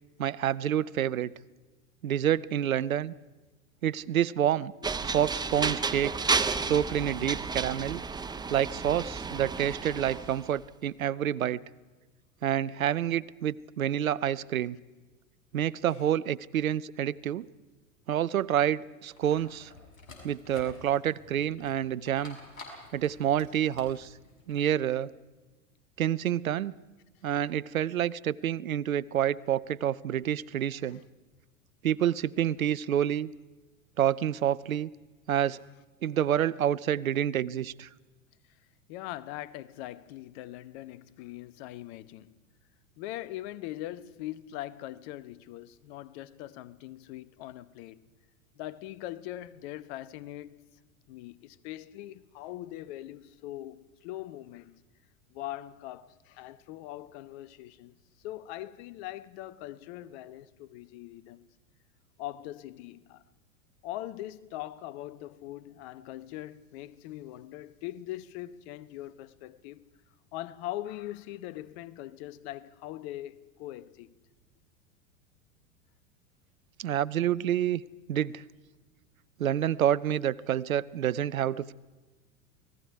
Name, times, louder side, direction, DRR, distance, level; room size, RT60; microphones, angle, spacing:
voice 1, 0.2-1.3 2.0-3.1 3.8-4.7 5.0-6.3 6.6-8.0 8.5-11.6 12.4-14.8 15.5-17.5 18.1-19.7 20.2-22.4 22.9-24.1 24.5-25.1 26.0-26.7 27.2-31.0 31.8-33.3 34.0-34.9 35.3-35.6 36.0-37.9 76.8-77.8 78.1-78.4 79.4-81.7, right 10 dB, 80° right, 0.7 m, -28 dB
sound 1, 4.8-10.5, right 4 dB, 10° right, 0.8 m, -32 dB
sound 2, 19.0-24.7, left 3 dB, 75° left, 6.7 m, -51 dB
voice 2, 38.9-42.4 43.0-48.0 48.6-50.6 51.1-54.8 55.3-58.0 58.2-61.5 62.2-63.2 63.8-69.9 70.3-74.1, left 14 dB, 50° left, 1.0 m, -41 dB
28.5 x 19.5 x 4.8 m
hypercardioid pair, 90°, 41 cm